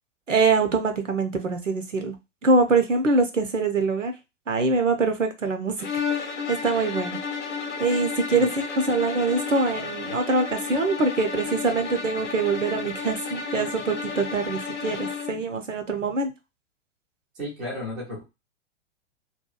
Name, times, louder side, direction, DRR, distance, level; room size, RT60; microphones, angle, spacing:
voice 1, 0.3-2.2 2.4-4.1 4.5-5.7 6.2-7.2 7.8-16.3, right 3 dB, 85° right, 0.6 m, -24 dB
sound 1, 5.8-15.5, left 5 dB, 75° left, 0.6 m, -32 dB
voice 2, 17.4-18.2, left 1 dB, 5° right, 0.3 m, -33 dB
2.8 x 2.3 x 2.3 m
figure-of-eight pair, 105°, 37 cm